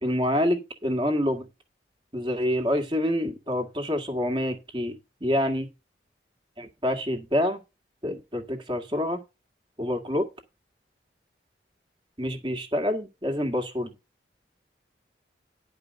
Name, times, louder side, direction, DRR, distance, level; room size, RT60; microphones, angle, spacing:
voice 1, 0.0-1.5 2.1-5.7 6.6-7.6 8.0-9.2 9.8-10.3 12.2-13.9, left 1 dB, 25° right, 5 dB, 1.9 m, -27 dB
11.0 x 5.1 x 6.4 m, 0.26 s
head